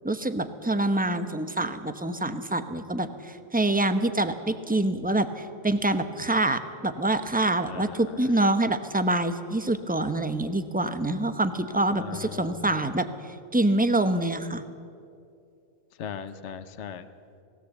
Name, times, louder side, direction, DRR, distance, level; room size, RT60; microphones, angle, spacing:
voice 1, 0.0-14.6, right 2 dB, 10° right, 10 dB, 0.7 m, -26 dB
voice 2, 7.7-8.0 11.9-12.6 16.0-17.1, left 7 dB, 60° left, 10 dB, 1.2 m, -38 dB
20.0 x 17.0 x 8.2 m, 2.4 s
omnidirectional pair, 1.4 m